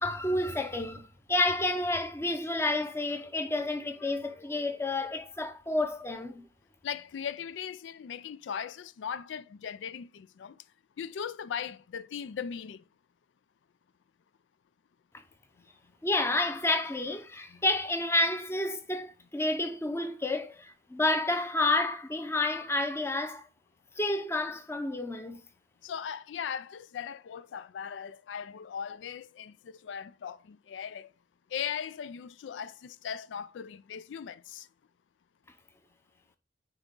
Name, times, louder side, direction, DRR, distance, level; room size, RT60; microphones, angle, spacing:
voice 1, 0.0-6.4 16.0-23.5 24.0-25.4, left 2 dB, 15° left, 0.7 m, -30 dB
voice 2, 6.8-10.6 11.0-12.8 17.5-17.6 25.8-31.1 31.5-34.7, left 7 dB, 85° left, 0.4 m, -38 dB
9.2 x 3.5 x 3.7 m
head